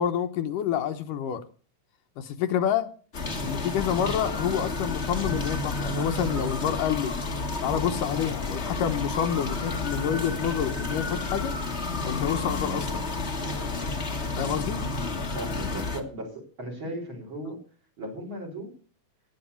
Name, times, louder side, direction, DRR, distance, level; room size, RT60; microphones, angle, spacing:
voice 1, 0.0-1.4 2.2-2.9 3.4-7.1 7.6-11.5 12.0-13.0 14.4-14.8, left 9 dB, 75° left, 7 dB, 2.5 m, -28 dB
sound 1, 3.1-16.0, left 3 dB, 30° left, 1.4 m, -31 dB
voice 2, 15.2-17.6 18.0-18.7, right 1 dB, 35° right, 0 dB, 5.0 m, -37 dB
17.5 x 9.5 x 7.0 m, 0.43 s
omnidirectional pair, 4.0 m